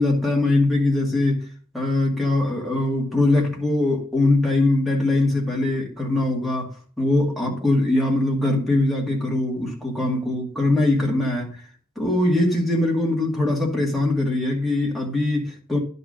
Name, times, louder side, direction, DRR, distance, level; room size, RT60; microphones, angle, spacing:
voice 1, 0.0-1.4 1.7-6.7 7.0-11.5 12.0-15.8, left 2 dB, ahead, 2.1 m, -21 dB
10.5 x 4.2 x 6.3 m
head